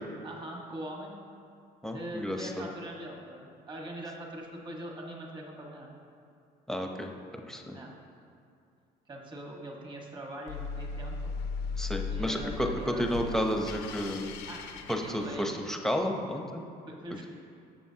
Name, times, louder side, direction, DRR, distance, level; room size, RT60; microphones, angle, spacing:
voice 1, 0.2-1.1 1.9-5.9 7.7-7.9 9.1-11.3 12.1-13.3 14.5-14.6 15.0-15.6 16.9-17.3, right 1 dB, 30° right, -1 dB, 1.5 m, -42 dB
voice 2, 1.8-2.7 6.7-7.1 7.5-7.8 11.8-14.4 14.9-16.6, equal, 5° left, 2 dB, 0.8 m, -31 dB
sound 1, 10.5-15.8, left 4 dB, 85° left, 0.7 m, -38 dB
13.0 x 7.1 x 2.9 m, 2.5 s
cardioid pair, 110°, 17 cm